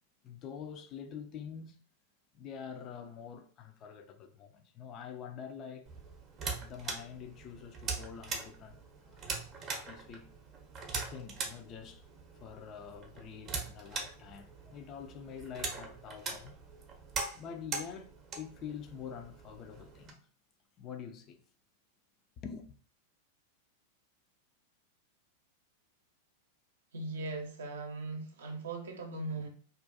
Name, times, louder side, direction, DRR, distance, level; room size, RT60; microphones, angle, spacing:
voice 1, 0.2-1.8 2.3-5.9 6.6-10.3 11.1-12.0 12.3-16.5 17.3-20.3 20.8-21.4 22.4-22.7, left 7 dB, 35° left, 0.3 m, -46 dB
sound 1, 5.8-20.1, right 4 dB, 30° right, 0.6 m, -42 dB
voice 2, 26.9-29.5, right 2 dB, 70° right, 0.6 m, -39 dB
2.4 x 2.2 x 2.5 m
figure-of-eight pair, 95°, 0 cm